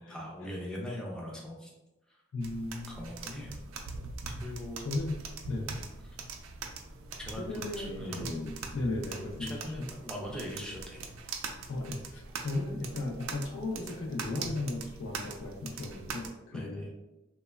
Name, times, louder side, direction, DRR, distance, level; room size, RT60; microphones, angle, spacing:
voice 1, 0.0-1.7 2.1-2.2 2.9-3.6 4.4-5.0 6.0-6.2 7.2-8.5 9.4-11.1 16.5-16.9, equal, 5° left, -3 dB, 0.4 m, -41 dB
voice 2, 2.3-3.0 4.8-5.2 5.5-5.8 7.5-9.6 11.7-16.9, left 2 dB, 70° left, -1 dB, 0.3 m, -36 dB
sound 1, 2.4-16.3, right 4 dB, 85° right, 0.3 m, -42 dB
2.9 x 2.1 x 2.2 m, 1.0 s
head